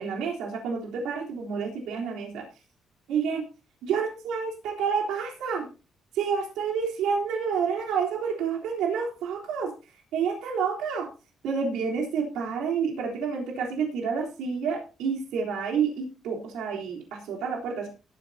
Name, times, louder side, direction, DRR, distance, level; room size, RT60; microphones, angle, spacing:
voice 1, 0.0-2.5 3.1-3.4 3.8-5.7 6.1-9.7 10.1-11.1 11.4-17.9, right 6 dB, 90° right, -1 dB, 3.6 m, -29 dB
19.5 x 9.5 x 2.8 m, 0.32 s
cardioid pair, 90°, 0 cm